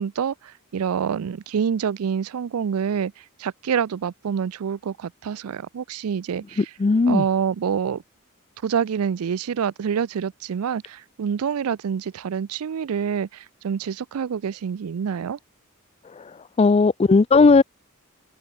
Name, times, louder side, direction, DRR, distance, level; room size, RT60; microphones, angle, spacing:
voice 1, 0.0-6.7 7.1-8.0 8.6-15.4, right 7 dB, 90° right, 0.4 m, -27 dB
voice 2, 6.6-7.2 16.6-17.6, left 4 dB, 30° left, 0.4 m, -16 dB
head